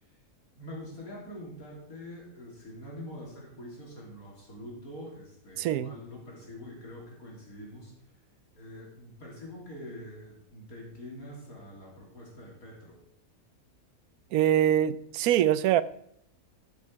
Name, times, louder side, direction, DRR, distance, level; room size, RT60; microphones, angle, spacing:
voice 1, 0.6-7.9 8.5-13.0, left 1 dB, 75° left, -2 dB, 3.6 m, -45 dB
voice 2, 5.6-5.9 14.3-15.8, right 11 dB, 85° right, 16 dB, 1.1 m, -24 dB
12.5 x 6.7 x 4.7 m, 0.71 s
omnidirectional pair, 1.5 m